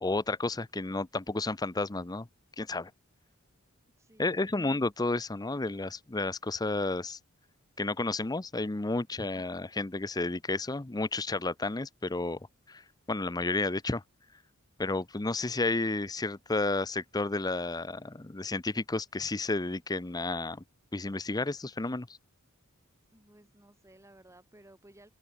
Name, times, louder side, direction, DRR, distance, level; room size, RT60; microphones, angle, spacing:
voice 1, 0.0-2.3 2.6-2.9 4.2-7.2 7.8-12.4 12.7-12.8 13.1-14.0 14.8-20.6 20.9-22.1, left 2 dB, 20° left, 0.6 m, -31 dB
voice 2, 4.0-4.6 23.1-25.1, right 1 dB, 15° right, 2.8 m, -58 dB
open air
head